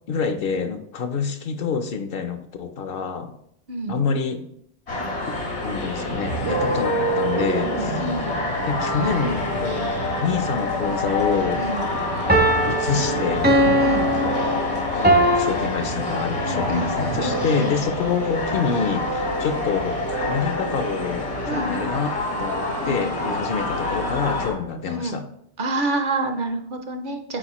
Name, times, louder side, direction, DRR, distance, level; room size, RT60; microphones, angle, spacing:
voice 1, 0.1-3.3 3.9-4.5 5.6-8.0 8.7-9.9 10.2-11.7 12.5-13.6 14.9-25.2, left 5 dB, 65° left, 8 dB, 0.7 m, -27 dB
voice 2, 3.7-4.0 6.7-6.8 7.7-8.2 11.5-11.8 13.8-14.1 16.4-17.7 21.5-21.9 22.8-23.1 24.9-25.2 25.6-27.4, right 2 dB, 55° right, 6 dB, 0.7 m, -28 dB
sound 1, 4.9-24.5, left 2 dB, 85° left, 1.9 m, -27 dB
Musical instrument, 6.1-23.7, right 3 dB, 85° right, 1.3 m, -34 dB
sound 2, 6.8-7.9 12.3-15.5, right 1 dB, 15° right, 0.4 m, -21 dB
8.9 x 4.2 x 2.9 m, 0.74 s
omnidirectional pair, 1.1 m